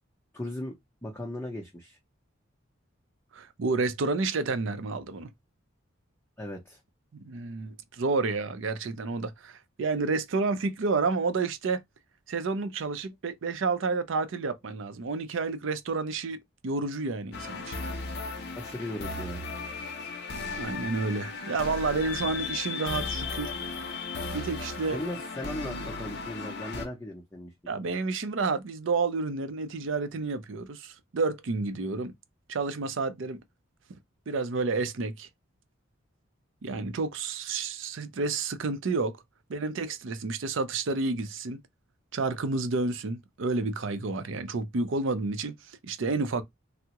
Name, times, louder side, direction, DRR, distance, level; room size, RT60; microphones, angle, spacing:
voice 1, 0.3-2.0 6.4-6.8 18.6-19.4 24.9-27.5, left 1 dB, 10° left, 0.5 m, -37 dB
voice 2, 3.3-5.3 7.2-11.8 12.3-17.8 20.5-23.5 24.3-25.0 27.7-32.1 32.5-33.4 34.3-35.3 36.6-39.2 39.5-41.6 42.1-46.4, right 3 dB, 65° right, 0.5 m, -30 dB
sound 1, 17.3-26.9, left 4 dB, 55° left, 0.6 m, -36 dB
3.5 x 2.0 x 2.8 m
head